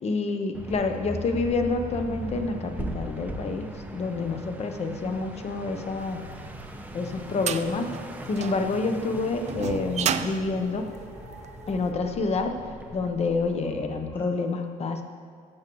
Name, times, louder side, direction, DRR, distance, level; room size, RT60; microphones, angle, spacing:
voice 1, 0.0-3.7 3.9-6.2 6.9-7.9 8.3-10.9 11.7-12.5 12.9-15.0, left 3 dB, 40° left, 6 dB, 0.9 m, -28 dB
sound 1, 0.5-13.1, right 1 dB, 10° right, 0.7 m, -40 dB
sound 2, 0.6-14.3, equal, 10° left, 1.5 m, -45 dB
sound 3, 6.4-11.7, right 8 dB, 40° right, 0.4 m, -33 dB
14.0 x 7.5 x 3.1 m, 2.1 s
cardioid pair, 110°, 17 cm